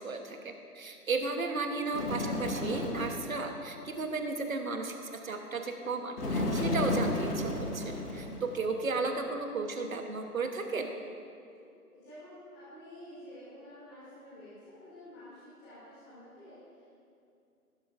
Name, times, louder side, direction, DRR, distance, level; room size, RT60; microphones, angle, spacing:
voice 1, 0.0-10.9, right 3 dB, 60° right, 5 dB, 1.1 m, -34 dB
Bird, 1.9-3.3 6.2-8.7, left 1 dB, 75° left, 2.0 m, -32 dB
voice 2, 11.6-16.9, left 1 dB, 15° left, -11 dB, 2.5 m, -50 dB
15.0 x 11.5 x 2.5 m, 2.5 s
figure-of-eight pair, 150°, 47 cm